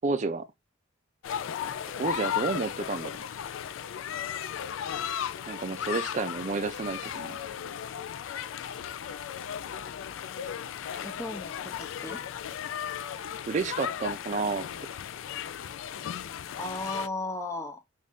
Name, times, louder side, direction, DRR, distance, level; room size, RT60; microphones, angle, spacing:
voice 1, 0.0-0.5 1.9-3.1 5.5-7.4 10.9-11.0 13.5-14.7, right 4 dB, 35° right, 0.4 m, -30 dB
sound 1, 1.2-17.1, left 9 dB, 70° left, 0.3 m, -36 dB
voice 2, 11.0-12.2 16.6-17.8, left 2 dB, 15° left, 0.6 m, -36 dB
3.2 x 2.5 x 3.5 m
head